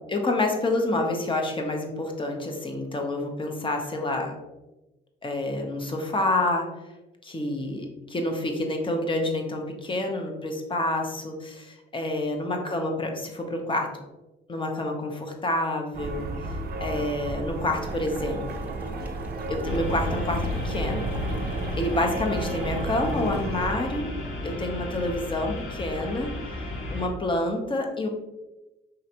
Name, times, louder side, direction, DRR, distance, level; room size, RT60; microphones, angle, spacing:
voice 1, 0.1-4.4 5.2-6.7 7.2-13.9 14.5-16.3 16.8-18.7 19.5-21.1 21.8-24.1 24.4-26.3 26.9-28.1, left 2 dB, 25° left, 3 dB, 0.9 m, -28 dB
sound 1, 15.9-23.7, right 2 dB, 50° right, 0.6 m, -33 dB
Boiling, 17.7-23.4, right 1 dB, 10° right, 0.8 m, -41 dB
sound 2, 19.6-27.1, left 1 dB, 80° left, 0.9 m, -33 dB
5.1 x 3.2 x 2.9 m, 1.0 s
cardioid pair, 90°, 20 cm